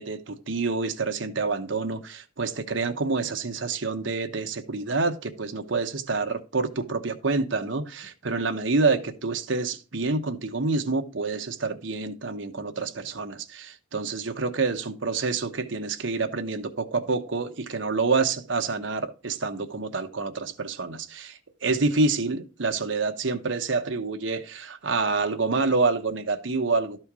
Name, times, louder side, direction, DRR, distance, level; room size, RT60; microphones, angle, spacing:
voice 1, 0.0-27.0, right 3 dB, 75° right, 1.0 m, -27 dB
12.5 x 4.4 x 4.8 m
head